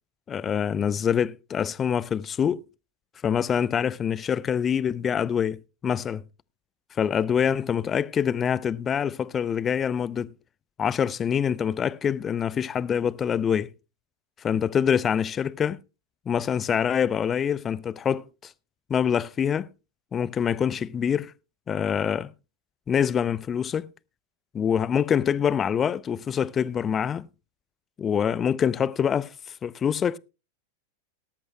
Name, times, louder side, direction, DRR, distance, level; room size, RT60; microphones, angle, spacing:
voice 1, 0.3-2.6 3.2-6.2 7.0-10.3 10.8-13.7 14.4-15.8 16.3-18.5 18.9-19.7 20.1-21.3 21.7-22.3 22.9-23.9 24.5-27.3 28.0-29.3 29.6-30.2, left 8 dB, 25° left, 0.5 m, -25 dB
18.0 x 13.5 x 2.2 m
figure-of-eight pair, 90°, 0 cm